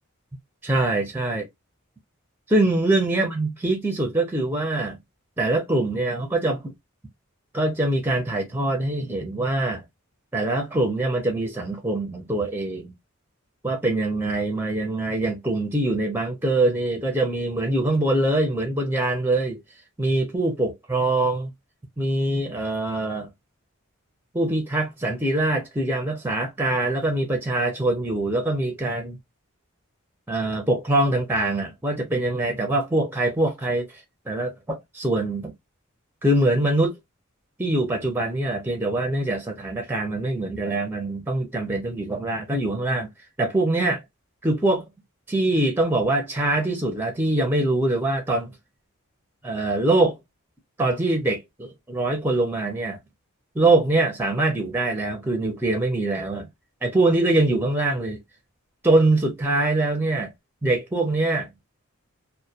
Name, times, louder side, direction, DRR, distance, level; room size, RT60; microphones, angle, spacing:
voice 1, 0.6-1.4 2.5-5.0 5.4-6.6 7.5-9.8 10.3-12.9 13.6-19.6 20.0-21.5 22.0-23.3 24.3-29.2 30.3-33.9 34.3-35.5 36.2-37.0 37.6-43.1 43.4-44.0 44.4-44.8 45.3-48.5 49.4-50.1 50.8-53.0 53.6-56.5 56.8-58.2 58.8-60.3 60.6-61.5, right 2 dB, 10° right, 0.5 m, -23 dB
2.2 x 2.2 x 2.6 m
head